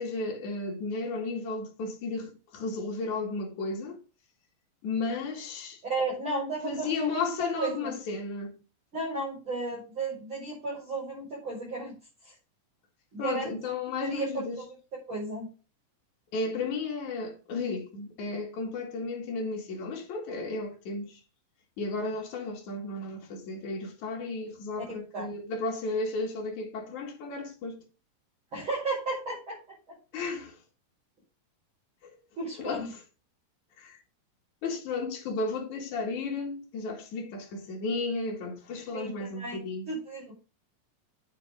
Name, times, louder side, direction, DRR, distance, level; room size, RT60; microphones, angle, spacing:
voice 1, 0.0-4.0 4.8-5.8 6.6-8.6 13.2-14.6 16.3-21.2 21.8-27.8 30.1-30.6 32.0-32.2 32.6-33.0 33.8-34.0 34.6-39.9, left 3 dB, 60° left, 3.6 m, -34 dB
voice 2, 5.8-7.2 7.6-8.0 8.9-11.9 12.2-12.3 13.1-13.5 14.0-14.6 15.1-15.5 24.9-25.3 28.5-30.0 32.4-32.9 38.9-40.3, right 3 dB, 35° right, 6.0 m, -34 dB
9.5 x 8.5 x 3.6 m
omnidirectional pair, 4.0 m